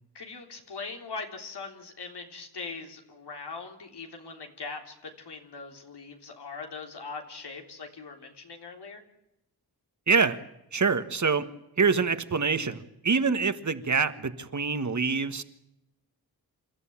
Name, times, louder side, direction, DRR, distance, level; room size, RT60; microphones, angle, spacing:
voice 1, 0.1-9.0, left 4 dB, 90° left, 3 dB, 3.6 m, -41 dB
voice 2, 10.1-10.4 10.7-11.5 11.8-15.4, right 5 dB, 45° right, 10 dB, 1.6 m, -25 dB
28.5 x 14.0 x 8.8 m, 0.87 s
wide cardioid pair, 100°, 39 cm